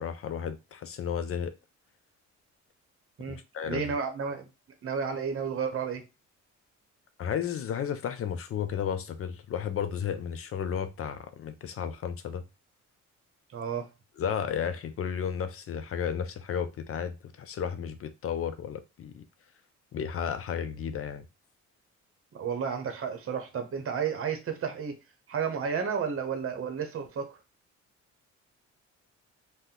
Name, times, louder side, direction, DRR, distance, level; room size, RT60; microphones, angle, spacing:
voice 1, 0.0-1.5 3.5-3.9 7.2-12.4 14.2-19.2 19.9-21.2, left 8 dB, 50° left, 0.5 m, -33 dB
voice 2, 3.7-4.5 4.8-6.0 13.5-13.9 22.3-25.0 25.3-27.4, right 6 dB, 45° right, 0.8 m, -32 dB
2.7 x 2.1 x 3.7 m
cardioid pair, 90°, 30 cm